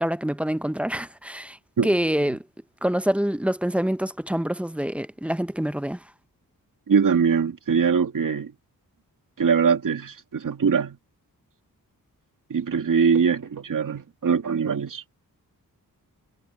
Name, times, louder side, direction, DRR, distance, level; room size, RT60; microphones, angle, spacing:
voice 1, 0.0-1.6 1.8-2.4 2.8-6.0, equal, 5° right, 0.7 m, -26 dB
voice 2, 6.9-8.5 9.4-11.0 12.5-15.0, right 6 dB, 60° right, 2.8 m, -22 dB
wide cardioid pair, 100°, 36 cm